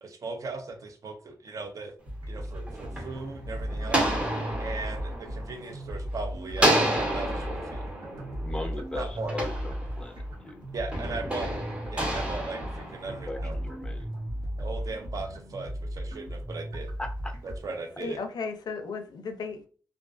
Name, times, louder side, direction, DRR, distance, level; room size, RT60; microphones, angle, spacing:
voice 1, 0.0-1.9 2.3-4.1 4.6-7.8 8.7-9.3 10.7-11.5 11.9-13.6 14.6-16.9 17.4-18.2, right 3 dB, 50° right, 5 dB, 0.5 m, -38 dB
sound 1, 2.0-17.6, equal, 75° right, 1.0 m, -36 dB
sound 2, 2.4-6.1 6.5-10.3 10.9-13.6, right 1 dB, 15° right, 0.7 m, -30 dB
voice 2, 8.4-10.6 13.1-14.1 17.0-17.3, left 2 dB, 10° left, 4 dB, 0.4 m, -38 dB
voice 3, 18.0-19.7, left 4 dB, 70° left, 6 dB, 0.4 m, -35 dB
2.3 x 2.3 x 2.3 m, 0.41 s
wide cardioid pair, 120°, 7 cm